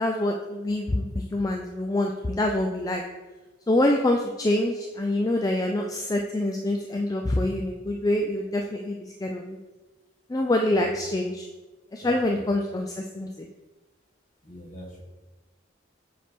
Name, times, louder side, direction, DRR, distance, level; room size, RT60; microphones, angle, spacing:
voice 1, 0.0-3.0 3.7-9.6 10.3-11.5 11.9-13.5, left 1 dB, 20° left, 2 dB, 0.3 m, -26 dB
voice 2, 12.0-12.5 14.4-15.0, equal, 40° left, -1 dB, 1.4 m, -42 dB
7.5 x 4.2 x 3.6 m, 1.2 s
head